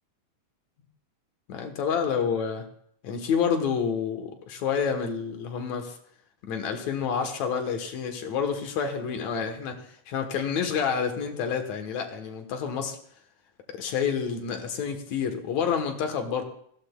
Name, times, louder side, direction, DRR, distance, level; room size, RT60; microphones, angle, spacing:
voice 1, 1.5-2.6 3.0-6.0 6.4-13.0 13.7-16.4, left 6 dB, 65° left, 5 dB, 2.4 m, -28 dB
20.0 x 14.5 x 2.3 m, 0.66 s
omnidirectional pair, 3.6 m